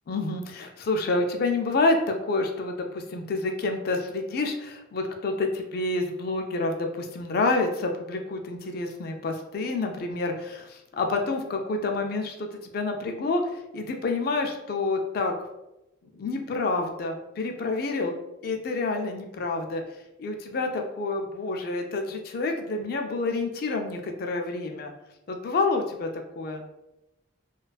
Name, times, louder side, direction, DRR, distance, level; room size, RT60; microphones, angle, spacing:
voice 1, 0.1-12.5 12.7-15.3 16.2-18.1 18.4-19.8 20.2-24.9 25.3-26.1 26.4-26.6, left 3 dB, 50° left, 4 dB, 0.3 m, -28 dB
2.4 x 2.3 x 2.2 m, 0.92 s
head